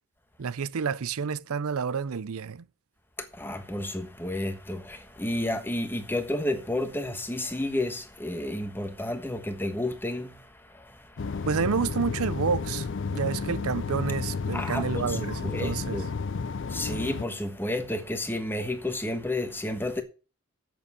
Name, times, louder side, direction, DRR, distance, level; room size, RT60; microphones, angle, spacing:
voice 1, 0.4-2.7 11.4-16.1, right 6 dB, 75° right, 0.5 m, -29 dB
voice 2, 3.2-11.5 14.5-16.1 16.7-20.0, left 1 dB, 10° left, 1.3 m, -31 dB
sound 1, 11.2-17.2, left 4 dB, 55° left, 0.5 m, -32 dB
7.9 x 6.9 x 8.4 m
head